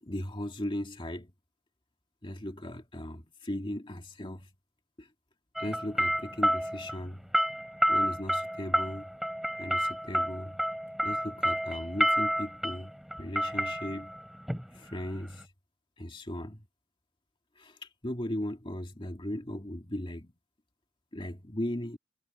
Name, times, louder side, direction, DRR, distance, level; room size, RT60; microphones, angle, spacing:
voice 1, 0.0-1.3 2.2-4.5 5.0-5.1 5.6-7.2 7.9-9.1 9.6-10.6 11.0-12.9 13.2-14.1 14.7-15.5 16.0-16.6 17.6-20.3 21.1-22.0, left 1 dB, 25° left, 2.2 m, -37 dB
sound 1, 5.6-15.4, equal, ahead, 4.1 m, -30 dB
head